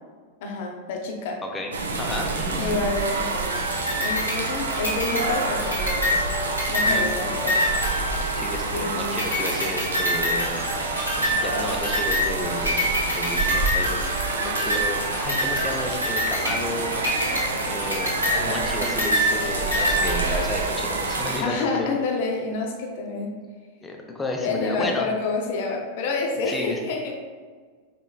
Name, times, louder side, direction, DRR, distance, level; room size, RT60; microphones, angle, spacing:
voice 1, 0.4-1.4 2.6-3.7 4.0-6.0 6.7-7.6 8.7-9.3 18.8-19.0 21.4-23.4 24.4-27.1, left 3 dB, 50° left, 2 dB, 0.7 m, -28 dB
voice 2, 1.4-2.8 6.8-7.5 8.3-14.1 14.4-17.4 17.6-21.9 23.8-25.1 26.5-26.8, left 2 dB, 10° left, 1 dB, 0.6 m, -32 dB
sound 1, 1.7-21.4, right 3 dB, 70° right, 0.4 m, -28 dB
sound 2, 3.5-8.8 9.2-20.7, left 1 dB, 90° right, 1.3 m, -27 dB
5.0 x 3.0 x 2.3 m, 1.5 s
figure-of-eight pair, 90°, 0 cm